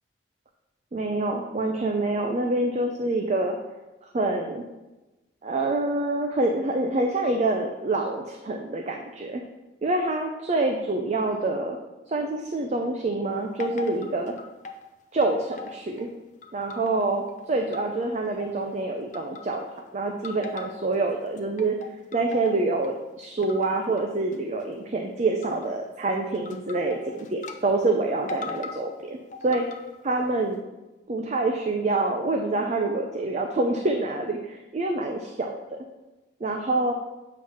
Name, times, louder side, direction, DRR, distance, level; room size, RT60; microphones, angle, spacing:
voice 1, 0.9-3.6 4.1-4.6 5.4-9.4 9.8-11.8 12.1-14.3 15.1-16.1 16.5-17.2 17.5-19.6 19.9-21.8 22.1-29.2 29.4-29.6 30.0-30.6 31.1-35.8 36.4-36.9, right 2 dB, 40° right, 3 dB, 0.4 m, -26 dB
sound 1, 13.6-14.9 15.2-16.1 16.4-18.1 18.4-18.8 19.1-19.8 20.2-21.0 21.4-23.0 23.4-24.0 24.3-24.6 25.4-25.7 26.3-27.6 27.8-27.9 28.3-28.8 29.3-30.0, left 4 dB, 40° left, 0.5 m, -40 dB
7.6 x 3.1 x 5.5 m, 1.1 s
head